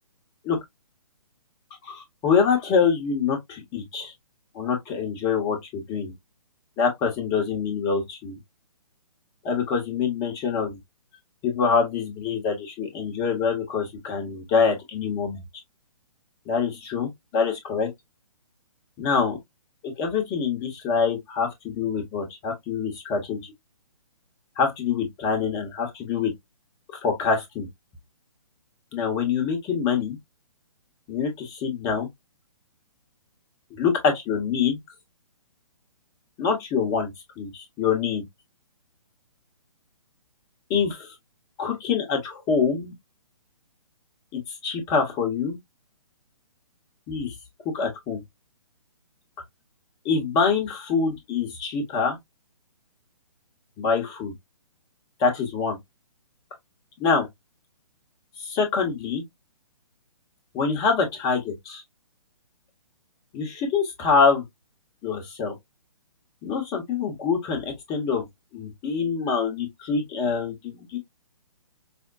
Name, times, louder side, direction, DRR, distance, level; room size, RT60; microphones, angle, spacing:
voice 1, 1.8-4.1 4.5-6.1 6.8-8.4 9.4-10.8 11.4-15.4 16.5-17.9 19.0-19.4 19.8-23.5 24.6-26.3 26.9-27.7 28.9-30.2 31.1-32.1 33.7-34.8 36.4-37.1 37.4-38.2 40.7-41.1 41.6-42.9 44.3-45.6 47.1-47.3 47.7-48.2 50.0-52.2 53.8-54.3 55.2-55.8 57.0-57.3 58.4-59.2 60.5-61.8 63.3-64.4 65.0-65.5 66.4-68.2 68.5-71.0, left 5 dB, 20° left, 1.0 m, -25 dB
5.0 x 2.1 x 2.5 m
figure-of-eight pair, 130°, 19 cm